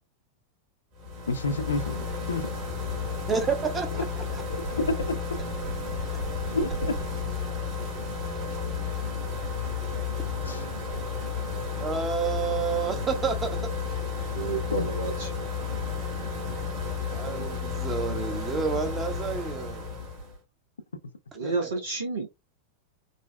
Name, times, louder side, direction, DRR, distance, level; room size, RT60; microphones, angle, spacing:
sound 1, 1.0-20.4, left 4 dB, 40° right, 1.4 m, -32 dB
voice 1, 1.3-2.5 4.8-5.2 6.5-6.9 10.4-10.7 14.7-14.8, left 3 dB, 70° left, 0.5 m, -29 dB
voice 2, 3.3-4.4 11.8-13.7 17.1-19.9 21.4-21.7, right 6 dB, 20° right, 0.8 m, -30 dB
voice 3, 14.3-15.3 21.3-22.3, right 3 dB, 70° right, 0.7 m, -30 dB
3.8 x 2.2 x 2.2 m
figure-of-eight pair, 90°, 0 cm